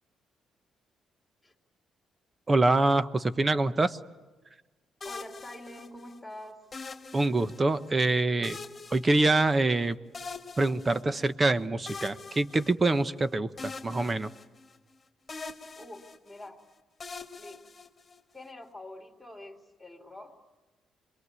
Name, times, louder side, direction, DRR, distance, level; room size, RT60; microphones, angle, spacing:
voice 1, 2.5-4.0 7.1-8.6 8.9-10.0 10.6-14.3, right 2 dB, 25° right, 12 dB, 1.1 m, -25 dB
sound 1, 5.0-6.2 6.7-7.9 8.4-9.8 10.1-11.3 11.9-13.2 13.6-15.0 15.3-16.5 17.0-18.4, left 4 dB, 30° left, 2.2 m, -43 dB
voice 2, 5.0-6.6 15.8-16.6 17.3-17.6 18.3-20.3, left 1 dB, 5° left, -1 dB, 3.0 m, -46 dB
26.5 x 22.0 x 9.7 m, 1.2 s
cardioid pair, 90°, 0 cm